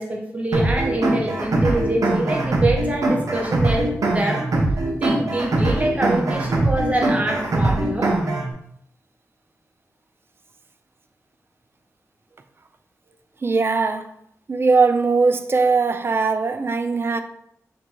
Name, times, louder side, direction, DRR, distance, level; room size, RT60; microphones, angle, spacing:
voice 1, 0.0-4.5 5.0-8.2, right 1 dB, 25° right, 1.1 m, -25 dB
sound 1, 0.5-8.5, right 2 dB, 75° right, 0.9 m, -21 dB
voice 2, 13.4-14.1 14.5-17.2, right 4 dB, 45° right, 0.4 m, -20 dB
3.4 x 2.8 x 4.4 m
cardioid pair, 60°, 6 cm